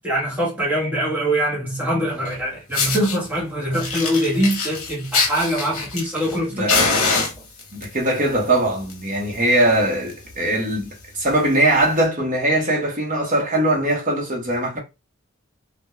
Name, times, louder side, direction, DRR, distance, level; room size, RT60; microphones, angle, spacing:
voice 1, 0.0-7.0, equal, 10° right, 1.1 m, -23 dB
Fire, 2.2-2.3 2.7-3.2 3.7-6.4 6.7-7.8 8.7-8.9 9.2-9.3 9.7-9.8 10.1-10.3 10.9-11.0 11.9-12.0, left 4 dB, 75° left, 0.9 m, -23 dB
voice 2, 6.5-6.9 7.7-14.8, right 1 dB, 35° right, 0.8 m, -21 dB
2.2 x 2.1 x 3.0 m
head